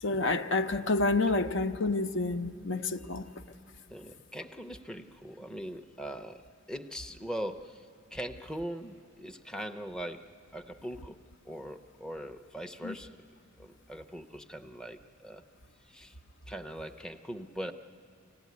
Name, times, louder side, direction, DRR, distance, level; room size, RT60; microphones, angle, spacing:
voice 1, 0.0-3.3 12.8-13.0, left 3 dB, 65° left, 0.7 m, -29 dB
voice 2, 3.9-6.4 6.7-11.2 11.4-13.2 13.6-15.4 15.8-16.1 16.5-17.7, equal, 5° left, 0.6 m, -41 dB
25.0 x 16.5 x 9.4 m
head